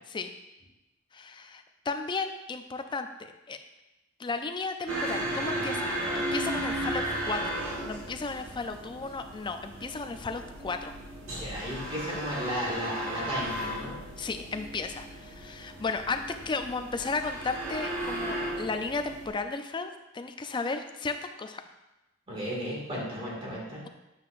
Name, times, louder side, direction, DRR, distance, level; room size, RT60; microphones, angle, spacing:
voice 1, 1.1-3.6 4.2-10.9 14.2-21.6, left 4 dB, 25° left, 7 dB, 0.4 m, -34 dB
sound 1, 4.9-19.3, right 1 dB, 85° right, 1.4 m, -35 dB
voice 2, 11.4-14.0 22.3-23.9, equal, 30° right, -5 dB, 2.0 m, -34 dB
7.9 x 5.6 x 2.5 m, 0.98 s
head